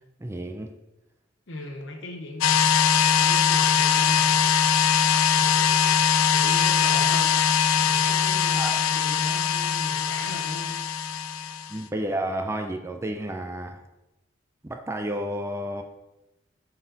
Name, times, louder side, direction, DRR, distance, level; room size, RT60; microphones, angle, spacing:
voice 1, 0.2-0.7 8.6-8.8 11.7-13.8 14.6-15.8, right 1 dB, 15° right, 5 dB, 0.4 m, -31 dB
voice 2, 1.5-5.0 5.3-5.9 6.3-10.7, left 2 dB, 65° left, 4 dB, 1.0 m, -38 dB
sound 1, 2.4-11.8, left 8 dB, 90° left, 0.4 m, -21 dB
7.9 x 4.2 x 4.0 m, 0.98 s
head